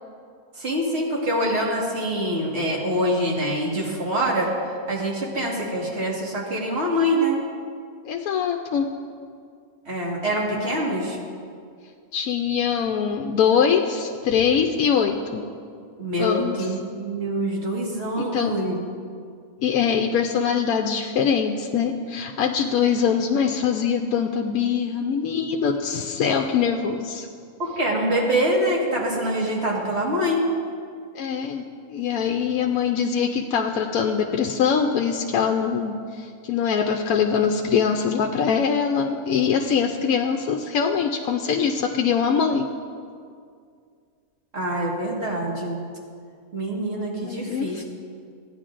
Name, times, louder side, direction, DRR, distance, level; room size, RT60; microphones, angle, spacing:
voice 1, 0.6-4.5 4.9-7.4 9.9-11.2 16.0-18.8 27.6-30.5 44.5-45.8 46.5-47.8, equal, 45° right, -3 dB, 1.9 m, -25 dB
voice 2, 8.0-8.9 12.1-15.4 16.2-16.7 18.2-18.5 19.6-27.3 31.1-42.7 47.2-47.8, left 7 dB, 75° left, 2 dB, 1.0 m, -23 dB
16.0 x 9.8 x 2.5 m, 2.2 s
omnidirectional pair, 1.6 m